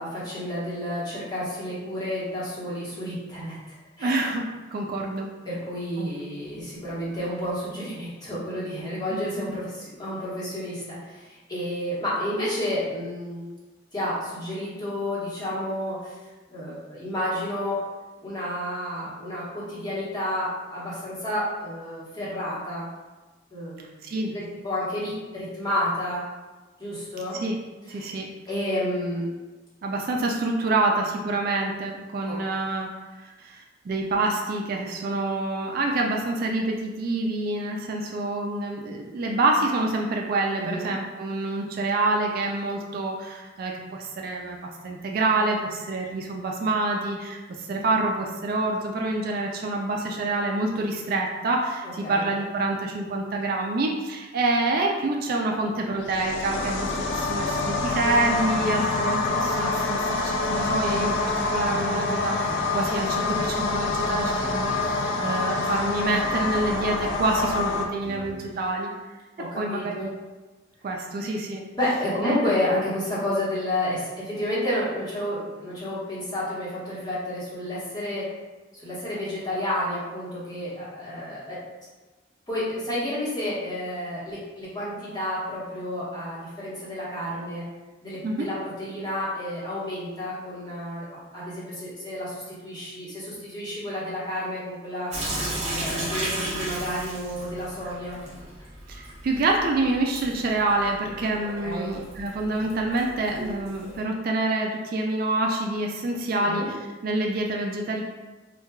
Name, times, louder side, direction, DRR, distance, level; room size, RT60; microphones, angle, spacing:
voice 1, 0.0-4.3 5.4-13.5 13.9-16.2 16.5-17.8 18.2-22.9 23.5-23.9 24.3-26.2 26.8-27.4 27.9-28.1 28.5-29.3 32.3-32.4 40.5-40.9 52.0-52.3 69.4-70.1 71.7-78.3 78.7-81.6 82.5-87.7 88.0-91.1 91.3-95.1 95.7-98.2 101.6-101.9 106.4-106.7, left 1 dB, 20° left, -9 dB, 1.1 m, -30 dB
voice 2, 4.0-4.4 4.7-5.3 6.0-6.1 9.5-9.6 24.0-24.3 27.4-27.6 27.9-28.3 29.8-32.9 33.2-68.9 69.6-70.1 70.8-71.6 72.2-72.5 88.2-88.5 98.9-106.8 107.0-108.0, right 2 dB, 50° right, 0 dB, 0.3 m, -27 dB
sound 1, 56.0-67.8, left 3 dB, 70° left, 0.4 m, -26 dB
sound 2, 61.0-68.7, equal, 5° right, 1.3 m, -42 dB
Sink (filling or washing) / Drip, 95.1-104.0, right 1 dB, 35° right, 0.8 m, -35 dB
4.4 x 2.3 x 2.3 m, 1.2 s
head